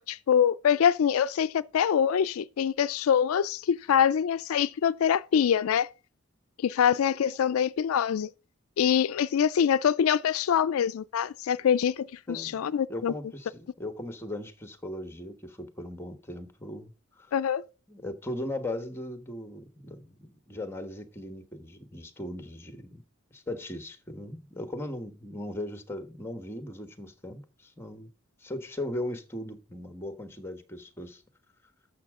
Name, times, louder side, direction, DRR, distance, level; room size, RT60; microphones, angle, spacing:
voice 1, 0.0-5.9 6.6-8.3 8.8-13.1 17.3-17.6, left 8 dB, 80° left, 0.4 m, -24 dB
voice 2, 12.3-16.9 17.2-17.3 17.9-23.0 23.3-28.1 28.4-31.2, left 1 dB, 10° left, 1.2 m, -38 dB
11.5 x 7.1 x 3.6 m
head